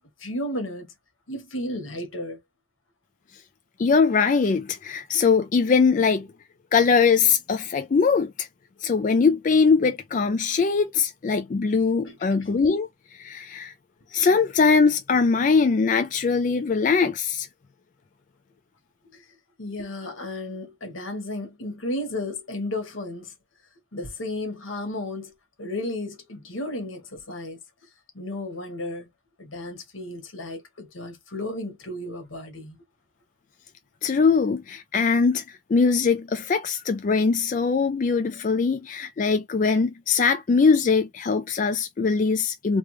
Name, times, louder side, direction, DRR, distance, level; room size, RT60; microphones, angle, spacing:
voice 1, 0.2-0.9 1.3-2.4 12.0-12.3 14.3-14.4 19.1-19.2 19.6-23.3 23.9-25.3 25.6-27.6 28.1-29.1 29.4-32.8, left 1 dB, 85° left, 1.4 m, -33 dB
voice 2, 3.8-6.3 6.7-8.5 8.8-12.9 13.2-13.7 14.1-17.5 34.0-35.4 35.7-42.8, left 5 dB, 40° left, 0.3 m, -21 dB
3.4 x 2.2 x 3.0 m
head